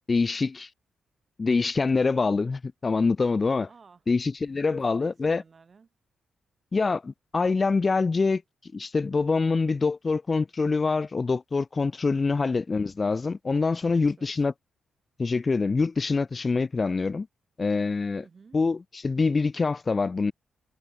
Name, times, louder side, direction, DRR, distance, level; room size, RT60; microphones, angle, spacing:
voice 1, 0.1-0.7 1.4-3.7 4.1-5.4 6.7-14.5 15.2-17.3 17.6-18.2 18.5-20.3, left 4 dB, 35° left, 0.5 m, -25 dB
voice 2, 3.7-4.0 4.7-5.9 13.8-14.3 18.2-18.6, right 5 dB, 45° right, 7.0 m, -55 dB
cardioid pair, 75°, 0 cm